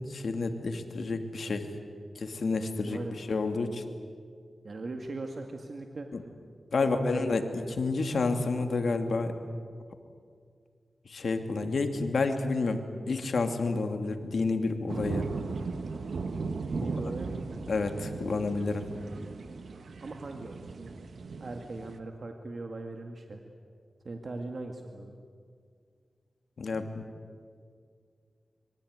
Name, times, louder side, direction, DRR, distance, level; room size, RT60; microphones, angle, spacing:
voice 1, 0.1-1.7 2.2-3.8 6.7-9.3 11.1-15.3 17.7-18.9 26.6-27.0, left 3 dB, 80° left, 6 dB, 2.5 m, -30 dB
voice 2, 4.6-6.1 6.8-7.4 7.7-7.8 16.6-17.4 20.0-20.9 21.4-23.4 24.0-25.2, right 2 dB, 60° right, 4 dB, 2.2 m, -39 dB
sound 1, 14.9-22.0, right 4 dB, 85° right, 1.5 m, -37 dB
25.5 x 23.5 x 9.6 m, 2.1 s
wide cardioid pair, 65°, 0 cm